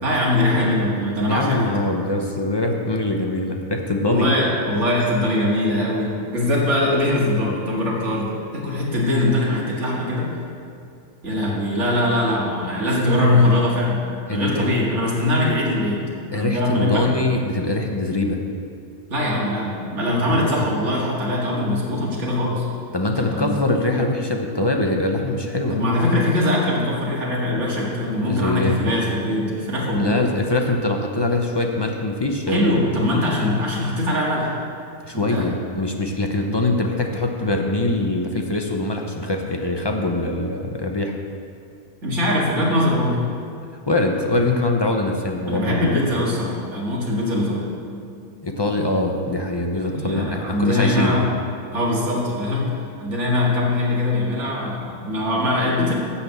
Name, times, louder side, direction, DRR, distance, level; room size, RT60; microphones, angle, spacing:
voice 1, 0.0-1.7 4.0-10.4 11.2-16.0 16.3-17.1 19.1-22.7 23.2-23.6 25.7-30.2 32.5-34.6 35.1-35.5 42.0-43.2 45.5-47.7 49.7-51.3 51.7-55.9, left 1 dB, 55° right, -4 dB, 2.3 m, -22 dB
voice 2, 1.3-4.3 14.3-14.7 16.3-18.4 20.2-20.6 22.9-25.8 28.2-28.8 30.0-32.8 35.0-41.2 43.9-45.9 48.4-51.2, left 2 dB, 30° left, 2 dB, 0.5 m, -23 dB
12.5 x 4.3 x 8.1 m, 2.4 s
omnidirectional pair, 1.5 m